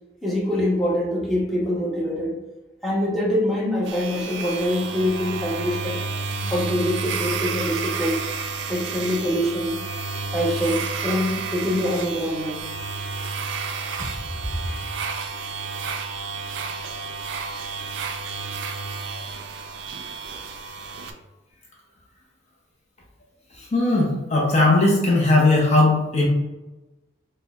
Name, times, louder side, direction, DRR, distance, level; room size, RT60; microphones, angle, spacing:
voice 1, 0.2-2.3 2.8-6.0 6.5-8.2 8.7-9.8 10.3-12.6 14.0-14.1, left 1 dB, ahead, -6 dB, 0.7 m, -24 dB
sound 1, 3.9-21.1, right 4 dB, 65° right, 0.3 m, -31 dB
voice 2, 23.6-26.3, left 2 dB, 35° left, -2 dB, 0.5 m, -18 dB
4.2 x 2.1 x 2.3 m, 1.1 s
head